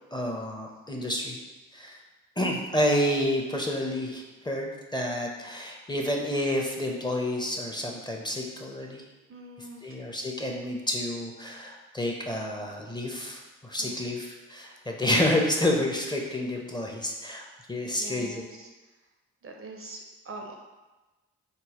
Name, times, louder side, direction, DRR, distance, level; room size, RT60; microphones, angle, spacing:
voice 1, 0.1-1.4 1.7-2.0 2.4-9.0 9.8-18.4, left 1 dB, 15° left, 0 dB, 0.6 m, -29 dB
voice 2, 9.3-10.0 13.8-14.0 18.0-18.7 19.4-20.5, right 2 dB, 40° right, 2 dB, 0.5 m, -43 dB
3.8 x 2.1 x 2.9 m, 1.2 s
hypercardioid pair, 40°, 35 cm